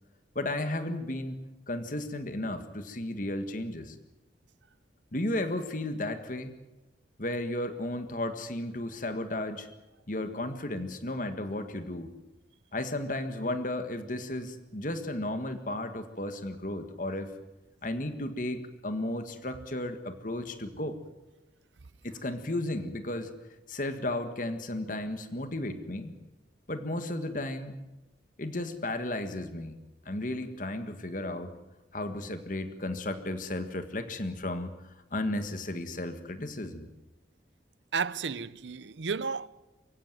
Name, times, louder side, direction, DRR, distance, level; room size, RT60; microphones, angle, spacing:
voice 1, 0.4-4.0 5.1-6.5 7.2-9.7 10.1-12.1 12.7-17.3 17.8-21.0 22.0-23.3 23.7-26.2 26.7-27.8 28.4-31.6 31.9-34.7 35.1-36.9, left 1 dB, 45° left, 1.7 m, -34 dB
voice 2, 37.9-39.5, right 5 dB, 90° right, 0.7 m, -32 dB
23.5 x 16.0 x 9.3 m
head